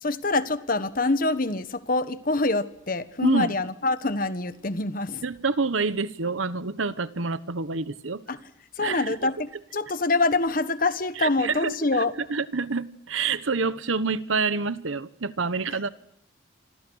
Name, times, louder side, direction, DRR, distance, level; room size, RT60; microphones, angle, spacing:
voice 1, 0.0-5.2 8.3-8.4 8.8-12.1, left 3 dB, 45° left, 1.3 m, -25 dB
voice 2, 3.2-3.5 5.2-8.2 8.8-9.0 11.2-15.9, right 4 dB, 85° right, 1.2 m, -27 dB
27.5 x 25.5 x 6.4 m
head